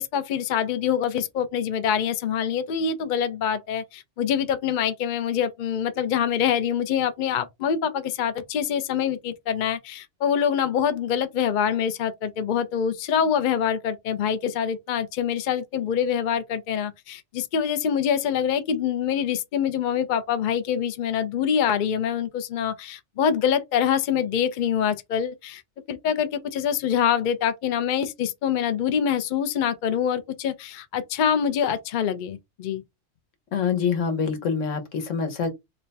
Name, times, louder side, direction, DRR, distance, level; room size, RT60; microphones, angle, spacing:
voice 1, 0.0-25.6 25.9-32.8, left 8 dB, 60° left, 0.5 m, -25 dB
voice 2, 33.5-35.5, left 6 dB, 75° left, 1.2 m, -25 dB
3.2 x 2.2 x 4.0 m
omnidirectional pair, 1.3 m